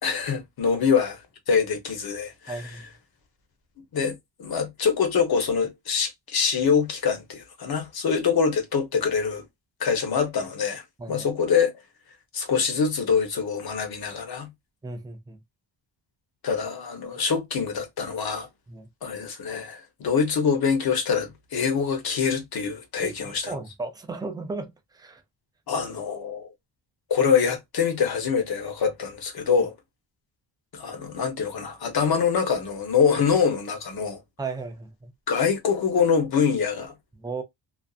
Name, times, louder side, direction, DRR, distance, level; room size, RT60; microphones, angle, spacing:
voice 1, 0.0-1.1 1.5-2.6 3.9-9.4 9.8-10.8 11.1-11.7 12.3-14.5 16.4-18.5 19.0-23.5 25.7-26.5 27.1-29.7 30.7-34.2 35.3-36.9, left 6 dB, 55° left, 0.8 m, -24 dB
voice 2, 2.5-2.8 11.0-11.3 14.8-15.4 18.7-18.9 23.0-25.2 34.4-35.1 37.1-37.4, right 3 dB, 10° right, 0.3 m, -35 dB
2.5 x 2.3 x 2.3 m
wide cardioid pair, 165°, 45 cm